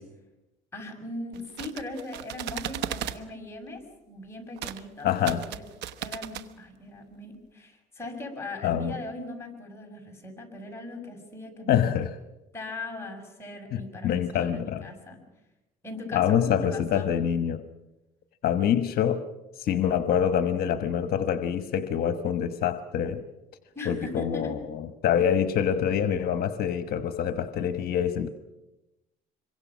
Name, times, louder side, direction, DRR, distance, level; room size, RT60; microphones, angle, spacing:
voice 1, 0.7-5.6 6.0-11.8 12.5-15.2 15.8-17.1 23.7-24.5 25.1-25.3, left 2 dB, 15° left, 1 dB, 6.4 m, -39 dB
sound 1, 1.3-3.2 4.6-4.8 5.1-6.5, right 11 dB, 85° right, 1.1 m, -36 dB
voice 2, 5.0-5.4 8.6-9.0 11.7-12.1 13.7-14.9 16.1-17.6 18.4-19.3 19.6-23.2 23.8-28.3, left 9 dB, 65° left, 9 dB, 1.2 m, -26 dB
26.5 x 23.5 x 6.2 m, 1.0 s
cardioid pair, 110°, 17 cm